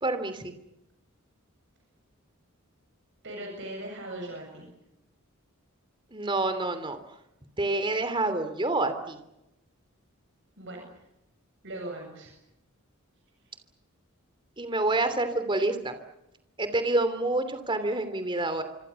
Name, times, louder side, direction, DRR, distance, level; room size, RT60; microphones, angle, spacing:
voice 1, 0.0-0.5 6.1-7.0 7.6-9.2 14.6-15.9 16.6-18.6, right 2 dB, 25° right, 10 dB, 3.0 m, -27 dB
voice 2, 3.2-4.7 10.6-10.9 11.6-12.3, right 1 dB, 60° right, 1 dB, 7.6 m, -39 dB
27.0 x 25.5 x 7.1 m, 0.88 s
head